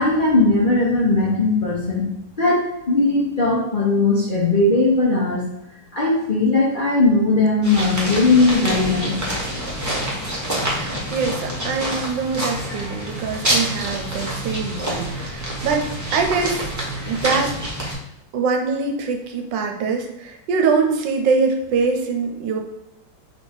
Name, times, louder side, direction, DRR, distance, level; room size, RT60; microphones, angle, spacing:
voice 1, 0.0-2.1 2.4-5.4 5.9-9.1, left 3 dB, 40° left, -7 dB, 0.7 m, -18 dB
sound 1, 7.6-17.9, right 1 dB, 15° right, 0.7 m, -27 dB
voice 2, 10.7-16.6 17.1-17.5 18.3-22.6, right 4 dB, 80° right, 4 dB, 1.3 m, -23 dB
3.5 x 3.4 x 4.3 m, 0.89 s
omnidirectional pair, 2.1 m